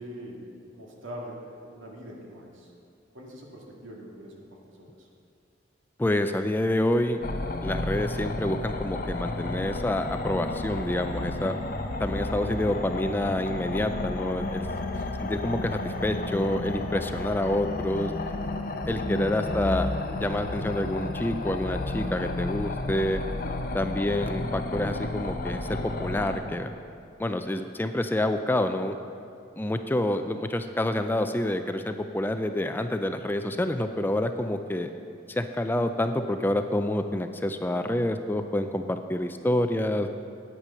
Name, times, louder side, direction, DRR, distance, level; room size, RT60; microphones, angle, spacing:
voice 1, 0.0-2.7 3.1-5.1 14.6-15.1 23.4-23.7, equal, 90° right, -1 dB, 2.0 m, -43 dB
voice 2, 6.0-7.2 7.6-11.6 12.0-14.6 15.2-18.1 18.9-19.9 20.1-23.2 23.7-26.7 27.2-29.0 29.6-34.9 35.3-40.1, left 1 dB, 10° left, 8 dB, 0.3 m, -28 dB
sound 1, 7.2-26.4, left 2 dB, 45° left, 0.7 m, -32 dB
9.3 x 8.8 x 5.7 m, 2.5 s
head